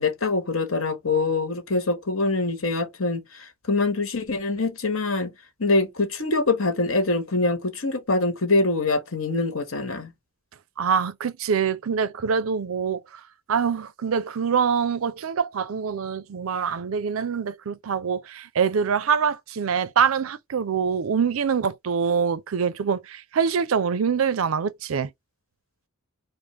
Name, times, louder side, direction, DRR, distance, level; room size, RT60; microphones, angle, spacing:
voice 1, 0.0-3.2 3.7-5.3 5.6-10.1, left 3 dB, 75° left, 1.3 m, -24 dB
voice 2, 10.8-13.2 13.5-25.1, right 6 dB, 80° right, 0.5 m, -24 dB
5.1 x 2.1 x 3.2 m
head